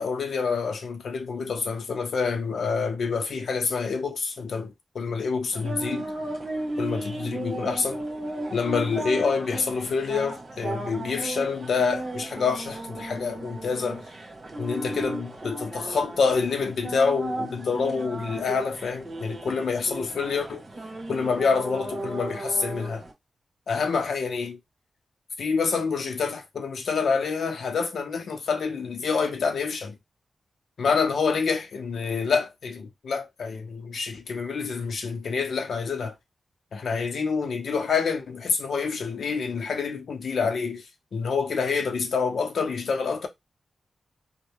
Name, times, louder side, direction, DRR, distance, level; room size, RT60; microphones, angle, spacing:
voice 1, 0.0-6.1 6.8-8.0 8.5-14.0 14.6-20.6 21.1-23.0 23.7-24.6 25.4-29.9 30.8-36.1 36.7-40.8 41.1-43.3, left 5 dB, 75° left, 0.8 m, -27 dB
sound 1, 5.5-23.1, right 1 dB, 55° right, 1.4 m, -35 dB
3.2 x 2.3 x 3.4 m
wide cardioid pair, 125°, 0 cm